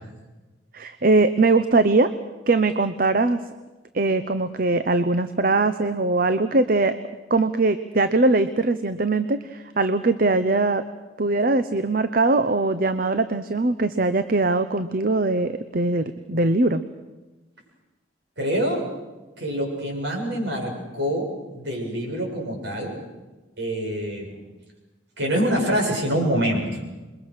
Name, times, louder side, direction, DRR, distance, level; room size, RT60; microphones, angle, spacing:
voice 1, 0.7-2.1 2.5-3.4 3.9-7.0 7.3-10.8 11.2-16.8, right 3 dB, 50° right, 11 dB, 0.8 m, -21 dB
voice 2, 18.4-18.8 19.4-21.3 21.5-23.0 23.6-24.4 25.2-26.8, equal, 65° right, 0 dB, 7.5 m, -25 dB
27.5 x 22.5 x 6.5 m, 1.1 s
head